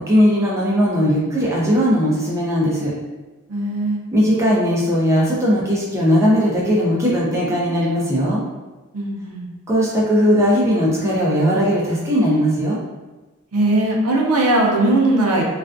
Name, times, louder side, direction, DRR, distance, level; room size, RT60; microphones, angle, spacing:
voice 1, 0.0-2.9 4.1-8.4 9.7-12.8, equal, 15° right, -6 dB, 0.5 m, -18 dB
voice 2, 3.5-4.0 8.9-9.5 13.5-15.4, right 2 dB, 90° right, -1 dB, 0.5 m, -18 dB
2.4 x 2.2 x 2.5 m, 1.2 s
head